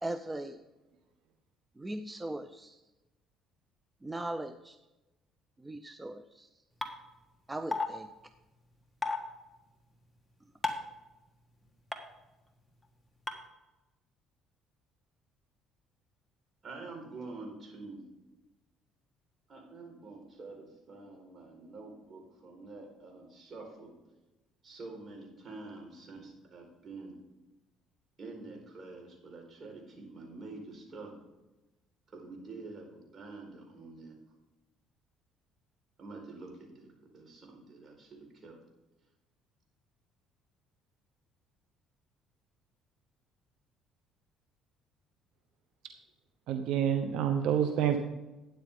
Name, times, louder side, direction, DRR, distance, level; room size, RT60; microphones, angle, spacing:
voice 1, 0.0-0.6 1.8-2.8 4.0-4.8 5.6-6.5 7.5-8.1, right 1 dB, 15° right, 10 dB, 0.6 m, -39 dB
sound 1, 6.8-6.9 7.7-7.9 9.0-9.2 10.6-10.9 11.9-12.0 13.3-13.4, left 3 dB, 10° left, 1.6 m, -31 dB
voice 2, 16.6-18.0 19.5-23.9 24.6-27.2 28.2-31.2 32.1-34.1 36.0-38.6, right 3 dB, 45° right, 1 dB, 4.6 m, -47 dB
voice 3, 46.5-48.0, right 9 dB, 75° right, 7 dB, 0.9 m, -28 dB
12.5 x 9.4 x 3.7 m, 1.0 s
supercardioid pair, 85°, 0 cm